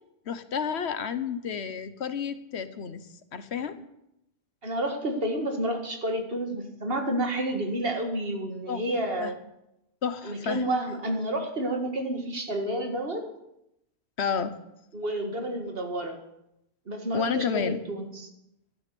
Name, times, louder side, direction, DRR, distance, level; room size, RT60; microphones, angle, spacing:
voice 1, 0.3-3.8 8.7-8.8 9.2-9.3 10.0-10.7 14.2-14.5 17.1-17.8, left 7 dB, 75° left, 11 dB, 1.2 m, -31 dB
voice 2, 4.6-9.4 10.2-13.2 14.9-16.2 16.9-18.3, right 1 dB, 60° right, 3 dB, 2.2 m, -30 dB
13.0 x 10.5 x 6.9 m, 0.85 s
omnidirectional pair, 1.1 m